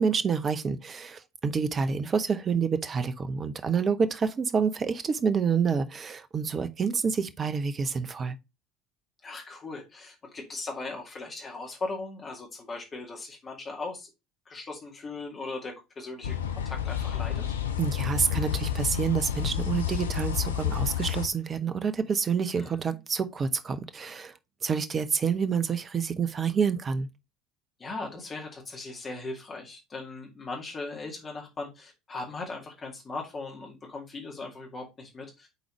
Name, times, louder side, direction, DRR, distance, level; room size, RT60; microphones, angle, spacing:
voice 1, 0.0-8.3 17.8-24.3 24.6-27.1, right 6 dB, 30° right, 0.8 m, -28 dB
voice 2, 9.2-14.1 14.5-17.5 22.6-22.8 27.8-35.5, left 3 dB, 25° left, 2.1 m, -38 dB
sound 1, 16.2-21.3, left 9 dB, 75° left, 0.6 m, -30 dB
8.0 x 4.0 x 3.0 m
figure-of-eight pair, 65°, 0 cm